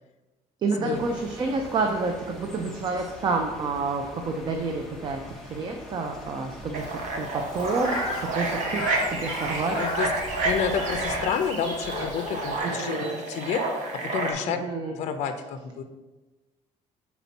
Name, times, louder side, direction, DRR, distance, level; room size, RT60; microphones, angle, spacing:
voice 1, 0.6-6.9 7.2-7.3 7.5-9.8 12.6-13.2 14.4-14.9, right 3 dB, 35° right, 3 dB, 0.5 m, -29 dB
sound 1, 0.9-11.3, left 1 dB, 5° left, 0.8 m, -43 dB
sound 2, 6.7-14.3, right 3 dB, 65° right, 1.0 m, -30 dB
Fowl, 7.4-12.6, left 3 dB, 30° left, 1.1 m, -36 dB
voice 2, 9.7-13.6 14.0-14.6 14.9-15.8, left 7 dB, 60° left, 8 dB, 0.5 m, -30 dB
5.9 x 4.2 x 4.0 m, 1.1 s
cardioid pair, 170°, 13 cm